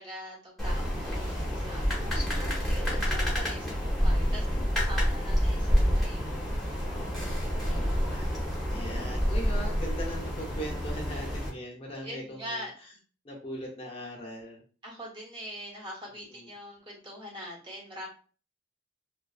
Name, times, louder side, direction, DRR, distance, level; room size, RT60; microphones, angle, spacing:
voice 1, 0.0-4.5 4.7-6.2 7.6-7.9 12.0-12.7 14.8-18.1, equal, 30° right, -3 dB, 1.1 m, -43 dB
sound 1, 0.6-11.5, equal, ahead, 0.8 m, -28 dB
voice 2, 1.9-2.6 4.2-4.7 6.9-12.9 13.2-14.6 16.1-16.5, equal, 35° left, -1 dB, 0.6 m, -41 dB
2.5 x 2.4 x 2.3 m, 0.39 s
head